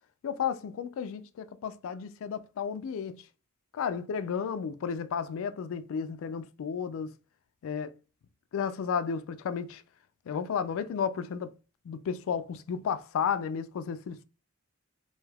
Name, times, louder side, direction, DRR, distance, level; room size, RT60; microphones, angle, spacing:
voice 1, 0.2-3.2 3.7-7.1 7.6-8.0 8.5-9.8 10.3-11.5 11.9-14.2, left 7 dB, 65° left, 0.3 m, -33 dB
2.7 x 2.3 x 3.3 m
head